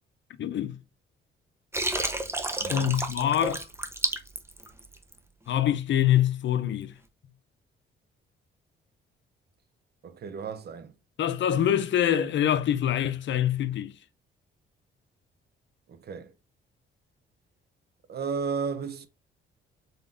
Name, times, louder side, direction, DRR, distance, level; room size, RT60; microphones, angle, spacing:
voice 1, 0.4-0.8 2.7-3.7 5.5-6.9 11.2-13.9, left 10 dB, 65° left, 0.6 m, -25 dB
Water, 1.7-5.2, right 2 dB, 10° right, 0.7 m, -30 dB
voice 2, 2.6-2.9 10.0-11.0 15.9-16.4 18.1-19.1, right 5 dB, 50° right, 0.7 m, -34 dB
3.8 x 3.7 x 2.6 m
cardioid pair, 85°, 21 cm